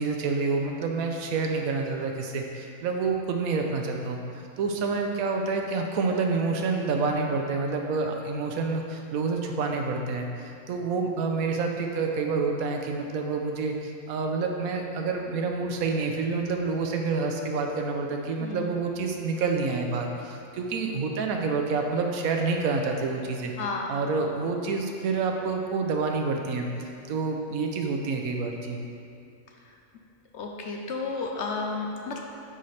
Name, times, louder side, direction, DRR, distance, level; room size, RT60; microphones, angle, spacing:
voice 1, 0.0-4.2 4.6-23.5 23.9-26.7 27.1-28.9, right 4 dB, 85° right, 2 dB, 1.1 m, -28 dB
voice 2, 18.4-18.7 23.6-23.9 29.6-29.7 30.3-32.2, left 3 dB, 65° left, 1 dB, 0.8 m, -32 dB
9.4 x 4.1 x 3.2 m, 2.7 s
omnidirectional pair, 1.5 m